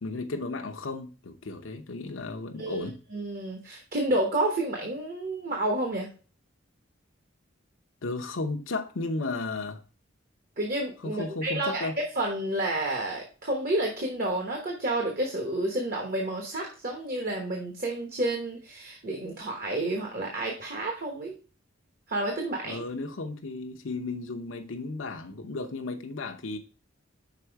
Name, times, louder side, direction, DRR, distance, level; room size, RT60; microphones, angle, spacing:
voice 1, 0.0-3.0 8.0-9.8 11.0-11.9 22.6-26.6, left 3 dB, 75° left, 0.7 m, -34 dB
voice 2, 2.6-6.1 10.6-11.9 12.2-21.3 22.1-22.8, right 1 dB, 45° right, 1.1 m, -30 dB
5.9 x 4.3 x 4.5 m
head